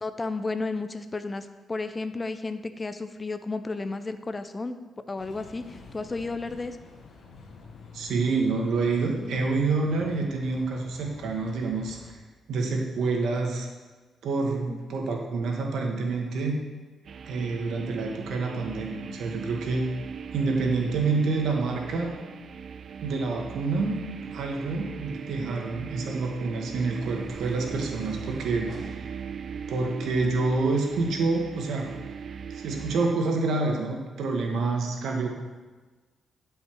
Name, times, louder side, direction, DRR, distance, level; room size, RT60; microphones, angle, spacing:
voice 1, 0.0-4.8 5.1-6.8 14.7-14.8, left 3 dB, 25° left, 10 dB, 0.4 m, -33 dB
sound 1, 5.2-12.1, left 4 dB, 60° left, 1.2 m, -48 dB
voice 2, 7.9-12.2 12.5-13.7 14.2-16.6 17.3-19.9 20.3-22.2 23.0-24.0 24.3-29.1 29.7-31.9 32.5-35.3, right 3 dB, 80° right, 1 dB, 1.4 m, -27 dB
sound 2, 17.1-33.1, right 6 dB, 55° right, 0.3 m, -40 dB
sound 3, 25.4-30.9, right 1 dB, 35° right, 2.4 m, -51 dB
9.8 x 5.5 x 4.5 m, 1.3 s
cardioid pair, 110°, 0 cm